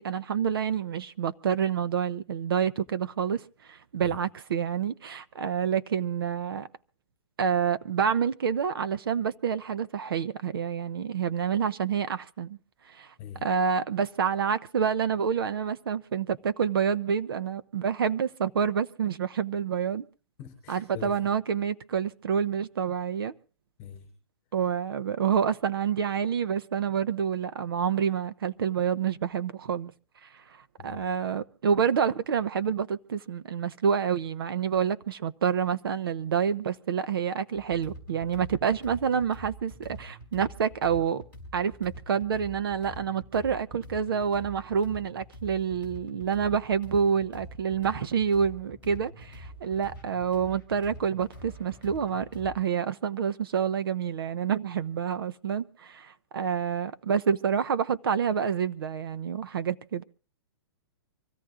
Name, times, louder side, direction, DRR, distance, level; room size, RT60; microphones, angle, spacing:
voice 1, 0.0-6.7 7.4-12.6 12.8-13.1 13.4-20.1 20.7-23.3 24.5-29.9 30.2-41.2 41.5-60.0, right 7 dB, 60° right, 0.7 m, -28 dB
voice 2, 20.4-21.2 23.8-24.1 30.8-31.0, left 8 dB, 20° left, 4.1 m, -43 dB
sound 1, 37.5-52.6, equal, 15° right, 6.0 m, -45 dB
25.5 x 17.0 x 2.5 m
hypercardioid pair, 175°, 14 cm